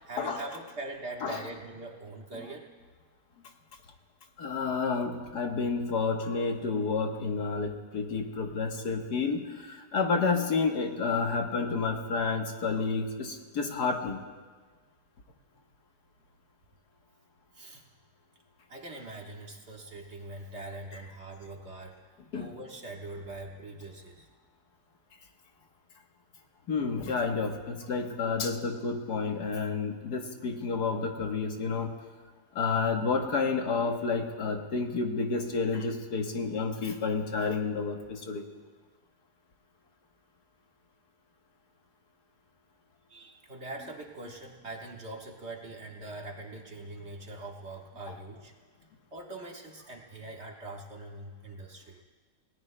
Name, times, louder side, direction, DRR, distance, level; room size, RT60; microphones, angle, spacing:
voice 1, 0.1-2.7 17.5-17.8 18.7-22.1 22.4-24.3 43.1-48.5 49.1-52.0, right 2 dB, 45° right, 0 dB, 1.6 m, -42 dB
voice 2, 4.4-14.2 22.3-22.5 26.7-31.9 32.6-38.5 48.1-48.2, left 4 dB, 75° left, 3 dB, 1.8 m, -30 dB
28.0 x 18.5 x 2.2 m, 1.4 s
omnidirectional pair, 1.7 m